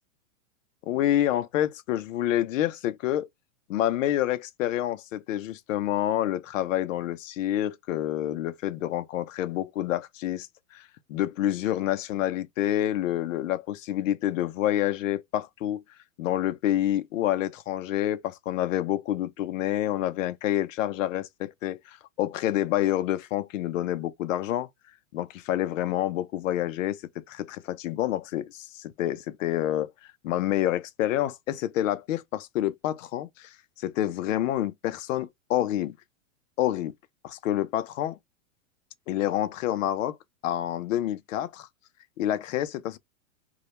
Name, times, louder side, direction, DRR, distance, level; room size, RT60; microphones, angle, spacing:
voice 1, 0.9-3.3 3.7-15.8 16.2-24.7 25.1-29.9 30.2-36.0 36.6-36.9 37.2-38.2 39.1-40.2 40.4-41.7 42.2-43.0, left 13 dB, 70° left, 0.5 m, -28 dB
2.2 x 2.1 x 2.8 m
supercardioid pair, 170°, 40 cm